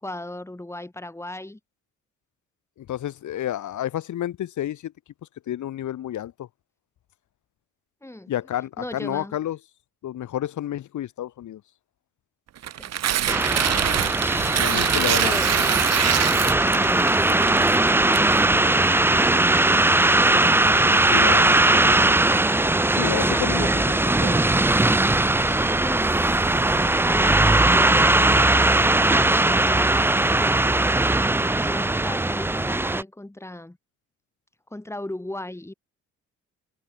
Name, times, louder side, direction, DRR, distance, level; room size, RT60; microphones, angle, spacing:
voice 1, 0.0-1.6 8.0-8.3 8.8-9.4 12.7-13.4 15.1-15.5 16.6-19.3 23.2-23.8 25.4-28.2 29.4-30.9 31.5-33.8 34.7-35.7, left 1 dB, 10° left, 5.4 m, -37 dB
voice 2, 2.8-4.9 5.5-6.5 8.3-9.6 10.0-11.6 14.5-15.4 21.0-21.6 22.9-23.7 24.2-24.4, left 12 dB, 75° left, 4.8 m, -30 dB
Tearing, 12.6-18.8, right 11 dB, 55° right, 1.0 m, -25 dB
sound 1, 13.3-33.0, right 2 dB, 5° right, 0.6 m, -19 dB
cardioid pair, 90°, 30 cm